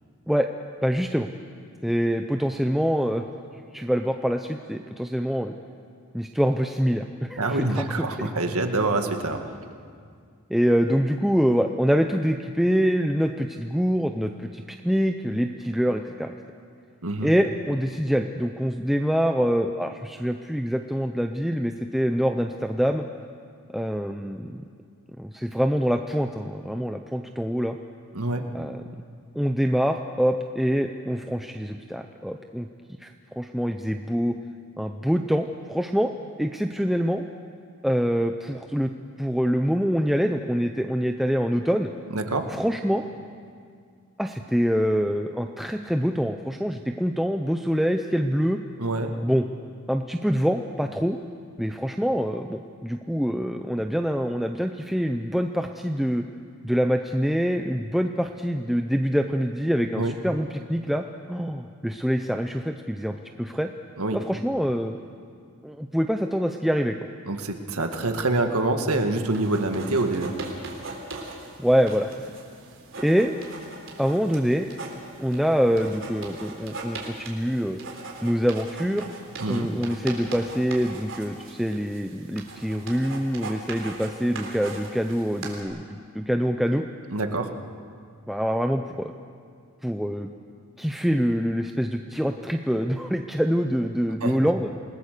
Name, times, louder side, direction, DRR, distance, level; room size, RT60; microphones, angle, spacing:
voice 1, 0.8-1.3 1.8-3.2 3.7-5.5 6.1-8.1 10.5-16.3 17.2-23.0 23.7-24.6 25.2-27.8 28.5-28.8 29.3-32.7 33.0-34.4 34.8-36.1 36.4-37.2 37.8-38.9 39.2-41.9 42.5-43.0 44.2-48.6 49.2-49.5 49.9-51.2 51.6-56.2 56.6-63.7 64.1-65.0 65.6-67.0 71.6-72.1 73.0-73.3 74.0-74.7 75.2-77.8 78.2-79.1 79.5-86.8 88.3-89.1 89.8-90.3 90.8-94.7, equal, ahead, 4 dB, 0.6 m, -25 dB
voice 2, 7.4-9.4 17.0-17.3 28.1-28.5 42.1-42.5 48.8-49.1 60.0-60.2 64.0-64.2 67.3-70.3 79.4-79.7 87.1-87.5 94.2-94.4, right 2 dB, 85° right, 5 dB, 1.8 m, -26 dB
sound 1, 69.3-85.6, right 3 dB, 60° right, 3.8 m, -40 dB
28.5 x 19.5 x 6.7 m, 2.2 s
head